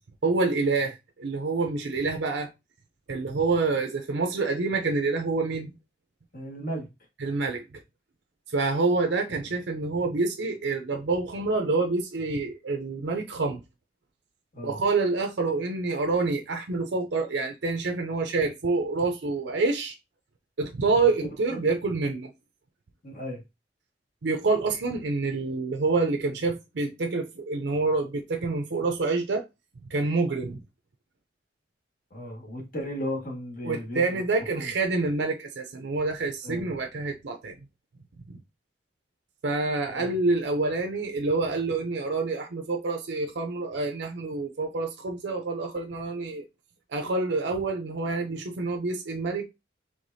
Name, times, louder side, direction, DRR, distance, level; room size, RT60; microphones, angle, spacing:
voice 1, 0.2-2.5 3.1-5.7 7.2-7.8 8.5-13.6 14.6-19.9 20.6-22.3 24.2-29.4 29.9-30.6 33.6-37.6 38.3-38.4 39.4-46.4 46.9-49.5, right 3 dB, 65° right, 0.6 m, -27 dB
voice 2, 6.3-6.9 14.5-14.8 23.0-23.4 32.1-34.0 34.5-34.7 36.4-36.7 39.9-40.2, equal, 50° left, 1.6 m, -35 dB
4.9 x 3.4 x 2.7 m
head